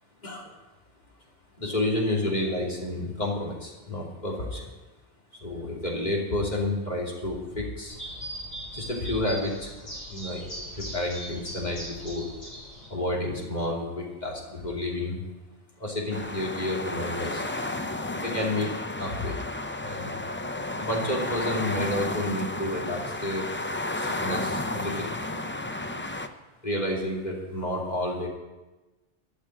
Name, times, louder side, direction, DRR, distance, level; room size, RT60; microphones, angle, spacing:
voice 1, 0.2-0.5 1.6-4.7 5.4-8.0 8.7-10.4 10.8-12.3 12.9-15.2 15.8-17.4 18.2-19.3 19.8-20.3 20.8-23.4 24.0-25.1 26.6-28.3, left 1 dB, 35° left, -3 dB, 3.0 m, -30 dB
sound 1, 7.9-12.9, right 1 dB, 80° left, 4.7 m, -39 dB
sound 2, 16.1-26.3, left 2 dB, 15° left, 0.4 m, -32 dB
13.0 x 6.5 x 9.8 m, 1.1 s
omnidirectional pair, 1.2 m